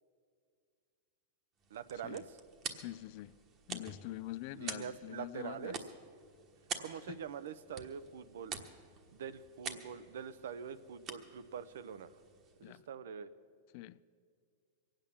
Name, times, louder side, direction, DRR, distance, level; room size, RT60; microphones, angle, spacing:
sound 1, 1.6-12.8, right 6 dB, 30° right, 1.2 m, -48 dB
voice 1, 1.7-2.2 4.5-5.8 6.8-8.6 9.1-12.1 12.6-13.3, right 7 dB, 80° right, 0.7 m, -44 dB
voice 2, 2.7-3.4 3.7-5.8 7.1-7.2 12.6-12.9 13.7-14.0, left 17 dB, 50° left, 0.3 m, -45 dB
22.5 x 8.9 x 7.1 m
supercardioid pair, 140°, 0 cm